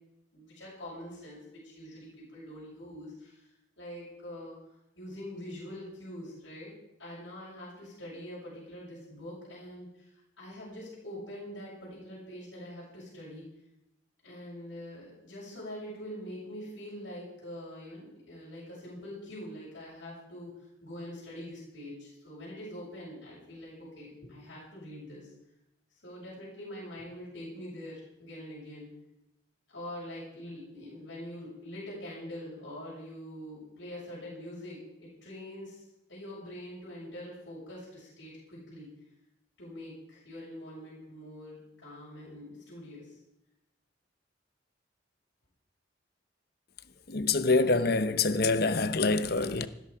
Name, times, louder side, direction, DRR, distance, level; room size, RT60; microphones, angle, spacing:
voice 1, 0.3-3.5 3.8-4.5 5.0-6.7 7.0-10.1 10.4-13.5 14.2-20.5 20.8-25.3 26.0-29.0 29.7-38.9 39.6-43.2, left 1 dB, 70° left, 7.0 m, -44 dB
voice 2, 47.1-49.7, left 3 dB, 50° left, 0.9 m, -26 dB
16.0 x 13.0 x 5.1 m
head